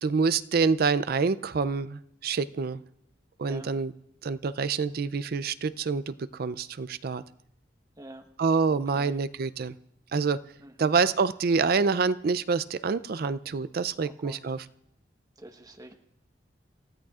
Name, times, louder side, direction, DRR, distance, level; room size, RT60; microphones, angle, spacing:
voice 1, 0.0-2.8 3.4-3.9 4.2-7.2 8.4-9.7 10.1-10.4 10.8-14.6, right 5 dB, 55° right, 15 dB, 0.4 m, -27 dB
voice 2, 3.4-3.7 8.0-8.2 8.7-9.2 10.6-10.9 14.0-14.6 15.4-15.9, right 1 dB, 20° right, 4 dB, 1.2 m, -47 dB
28.5 x 15.5 x 2.4 m, 0.76 s
head